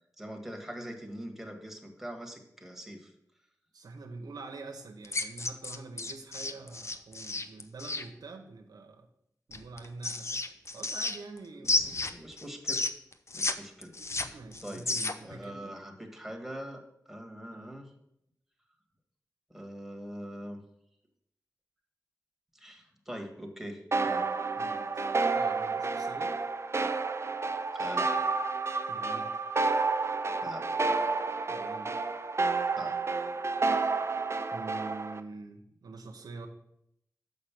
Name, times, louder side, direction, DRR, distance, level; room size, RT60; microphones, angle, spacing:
voice 1, 0.2-3.1 11.6-12.8 13.3-14.9 15.2-16.8 17.0-17.9 19.5-20.6 22.5-24.3 27.7-28.2 30.4-30.6 31.0-31.1 32.8-32.9, equal, 5° right, 4 dB, 1.7 m, -43 dB
voice 2, 3.7-9.1 9.5-12.2 14.3-15.8 17.5-17.7 24.6-26.3 28.9-29.3 31.4-31.9 34.4-36.5, right 3 dB, 85° right, 3 dB, 0.9 m, -46 dB
sound 1, 5.0-8.0 9.5-11.4 11.6-13.5 13.8-15.3, left 3 dB, 45° left, 0.7 m, -32 dB
sound 2, 23.9-35.2, right 3 dB, 45° right, 0.6 m, -30 dB
6.6 x 5.4 x 5.9 m, 0.78 s
cardioid pair, 45°, 7 cm